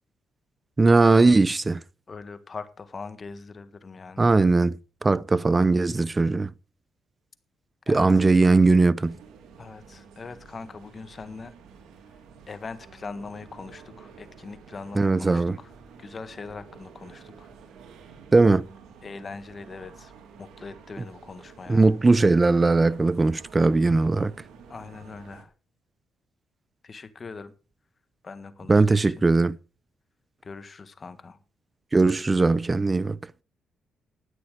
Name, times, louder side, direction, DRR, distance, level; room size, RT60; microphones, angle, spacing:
voice 1, 0.8-1.8 4.2-6.5 7.9-9.2 15.0-15.6 18.3-18.7 21.7-24.3 28.7-29.6 31.9-33.2, right 3 dB, 25° right, 0.6 m, -19 dB
voice 2, 2.1-4.3 7.9-8.2 9.6-11.5 12.5-15.7 16.0-17.5 19.0-20.1 20.4-21.9 24.7-25.5 26.8-27.5 28.2-29.1 30.4-31.4, left 4 dB, 35° left, 1.6 m, -41 dB
sound 1, 9.0-25.4, right 6 dB, 80° right, 2.8 m, -50 dB
13.0 x 9.5 x 5.0 m
cardioid pair, 90°, 0 cm